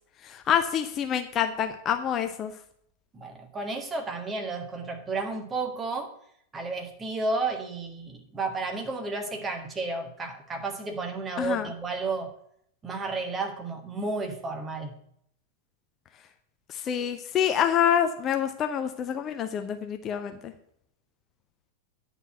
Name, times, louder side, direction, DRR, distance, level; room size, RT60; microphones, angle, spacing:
voice 1, 0.2-2.5 11.4-11.7 16.7-20.5, left 9 dB, 30° left, 7 dB, 0.7 m, -27 dB
voice 2, 3.1-6.1 6.5-12.3 12.8-15.0, right 3 dB, 20° right, 4 dB, 1.5 m, -32 dB
9.9 x 4.5 x 7.5 m, 0.68 s
figure-of-eight pair, 90°, 0 cm